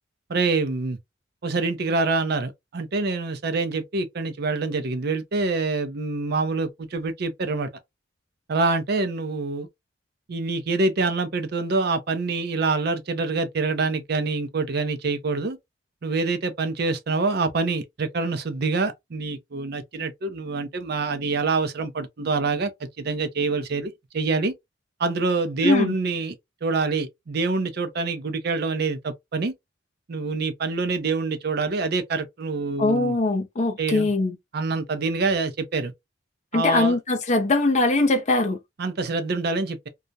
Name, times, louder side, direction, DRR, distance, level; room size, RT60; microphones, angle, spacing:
voice 1, 0.3-1.0 1.4-7.7 8.5-9.7 10.3-15.6 16.0-22.7 23.0-24.5 25.0-26.3 26.6-29.5 30.1-33.1 33.8-34.1 34.5-35.9 36.5-37.0 38.8-39.9, right 3 dB, 55° right, 0.5 m, -26 dB
voice 2, 25.6-25.9 32.8-34.4 36.5-38.6, left 2 dB, 35° left, 0.5 m, -21 dB
2.3 x 2.0 x 2.6 m
head